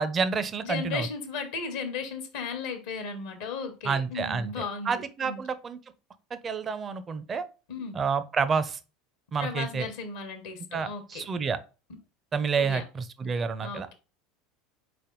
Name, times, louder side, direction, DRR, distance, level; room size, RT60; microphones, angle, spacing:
voice 1, 0.0-1.1 3.8-4.5 4.9-5.8 6.3-7.5 7.9-8.8 9.3-9.9 10.7-11.6 12.3-13.9, right 5 dB, 30° right, 0.6 m, -29 dB
voice 2, 0.6-5.4 7.7-7.9 9.4-11.2 12.6-12.8 13.6-13.9, left 5 dB, 70° left, 1.0 m, -35 dB
4.0 x 3.4 x 3.8 m
hypercardioid pair, 80°, 0 cm